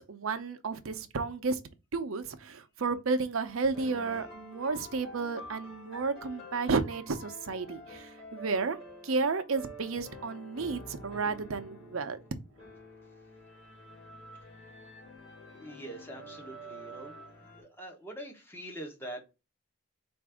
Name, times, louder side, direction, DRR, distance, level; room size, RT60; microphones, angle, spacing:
voice 1, 0.0-1.6 1.9-8.8 9.0-12.2, right 4 dB, 90° right, 0.7 m, -32 dB
sound 1, 3.7-17.6, equal, 25° left, 2.7 m, -48 dB
voice 2, 15.5-17.1 17.5-19.2, right 1 dB, 10° left, 1.1 m, -44 dB
4.2 x 2.6 x 4.7 m
head